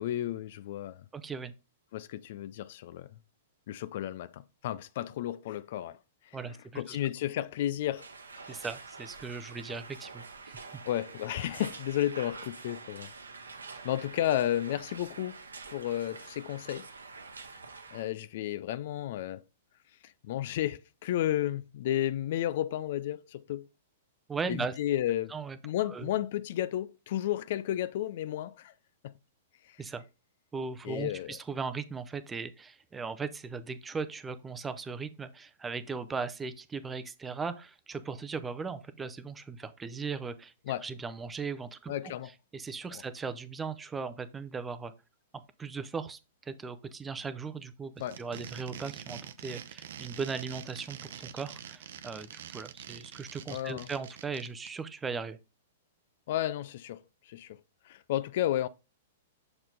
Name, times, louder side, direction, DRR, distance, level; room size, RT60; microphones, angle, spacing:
voice 1, 0.0-1.0 1.9-3.1 3.7-6.0 6.3-6.4 6.8-8.1 8.4-8.6 10.9-13.1 13.7-15.4 15.7-16.9 17.9-19.4 20.0-23.7 24.5-25.4 25.6-28.7 29.0-29.1 29.7-29.8 30.8-31.4 40.7-40.8 41.9-42.3 42.9-43.0 48.0-48.2 53.5-53.9 56.3-57.6 57.9-58.7, left 12 dB, 55° left, 0.3 m, -32 dB
voice 2, 1.1-1.5 6.3-7.0 8.5-10.7 24.3-24.7 25.3-25.6 25.9-26.1 29.8-30.0 30.5-40.5 40.8-41.9 42.5-44.9 45.6-55.4, right 5 dB, 15° right, 0.6 m, -38 dB
sound 1, 7.9-18.0, right 4 dB, 85° right, 0.9 m, -46 dB
sound 2, 48.0-54.7, right 9 dB, 65° right, 0.6 m, -45 dB
6.7 x 4.3 x 3.8 m
hypercardioid pair, 110°, 0 cm